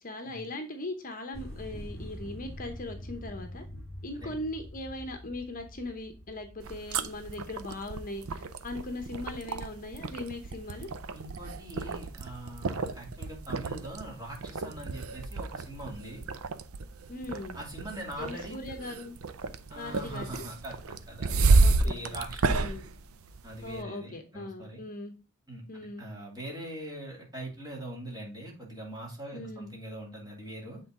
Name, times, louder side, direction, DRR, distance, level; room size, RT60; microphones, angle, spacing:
voice 1, 0.0-3.6 4.0-10.9 17.1-17.6 18.2-19.2 19.8-20.4 21.6-22.2 22.5-22.9 23.6-25.1 25.7-26.1 29.3-29.7, left 2 dB, 40° left, 6 dB, 0.9 m, -39 dB
sound 1, 1.3-12.2 12.5-14.3 14.6-15.3, left 1 dB, ahead, 4.1 m, -47 dB
sound 2, 6.6-23.8, right 3 dB, 75° right, 0.6 m, -31 dB
voice 2, 11.1-16.2 17.5-18.6 19.7-22.7 23.4-24.8 25.5-30.8, right 1 dB, 20° right, -1 dB, 2.6 m, -42 dB
7.8 x 3.9 x 3.7 m, 0.32 s
head